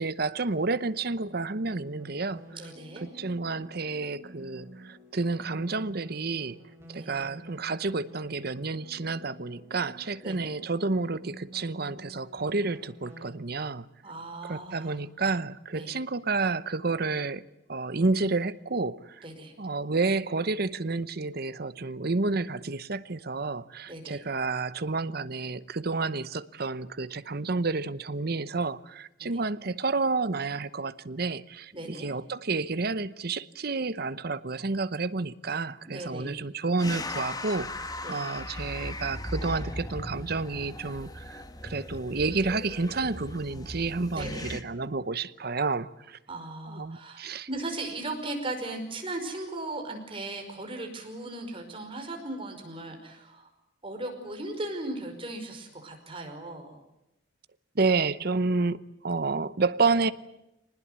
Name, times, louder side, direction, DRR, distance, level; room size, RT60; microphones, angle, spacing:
voice 1, 0.0-2.4 3.0-6.6 6.9-13.9 14.5-17.4 17.7-19.2 19.6-46.2 46.7-47.5 57.7-60.1, right 3 dB, 55° right, 0.9 m, -30 dB
sound 1, 1.2-13.3, equal, 15° right, 5.8 m, -49 dB
voice 2, 2.5-3.1 7.0-7.2 10.2-10.4 14.0-15.0 15.7-15.9 19.2-19.5 23.9-24.2 31.7-32.1 35.8-36.4 38.0-38.2 44.1-44.6 46.3-53.5 53.8-56.7, right 2 dB, 30° right, 5.3 m, -37 dB
sound 2, 36.8-44.6, left 2 dB, 20° left, 1.3 m, -38 dB
24.5 x 20.0 x 9.5 m
head